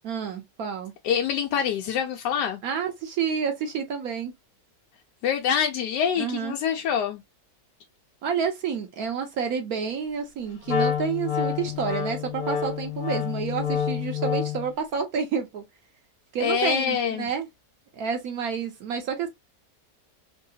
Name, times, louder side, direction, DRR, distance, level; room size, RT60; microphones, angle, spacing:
voice 1, 0.0-0.9 2.6-4.3 6.2-6.6 8.2-15.6 16.3-17.5 17.9-19.3, right 6 dB, 70° right, 1.1 m, -29 dB
voice 2, 1.0-2.6 5.2-7.2 16.4-17.3, left 8 dB, 85° left, 1.2 m, -25 dB
Wind instrument woodwind instrument, 10.7-14.7, left 8 dB, 65° left, 1.4 m, -28 dB
3.3 x 2.7 x 2.7 m
omnidirectional pair, 1.7 m